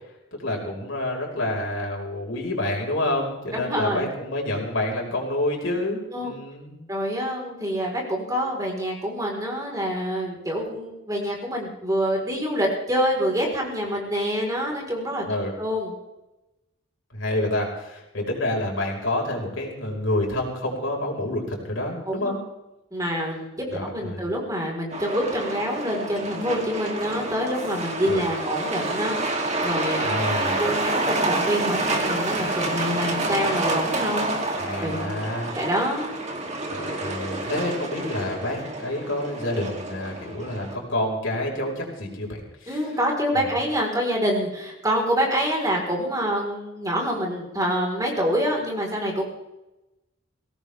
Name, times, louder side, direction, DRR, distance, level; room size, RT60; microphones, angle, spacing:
voice 1, 0.4-6.8 15.2-15.5 17.1-22.4 23.7-24.3 28.0-28.2 30.0-30.7 34.6-35.5 36.7-42.8 43.3-43.5, left 1 dB, 75° left, -1 dB, 5.2 m, -28 dB
voice 2, 3.5-4.1 6.1-6.3 6.9-15.2 15.6-15.9 22.1-22.3 22.9-30.1 30.6-35.1 35.5-36.1 42.7-49.2, equal, 15° right, -1 dB, 4.4 m, -26 dB
Truck, 24.9-40.7, right 2 dB, 35° right, 3.0 m, -28 dB
22.0 x 17.5 x 3.6 m, 0.97 s
head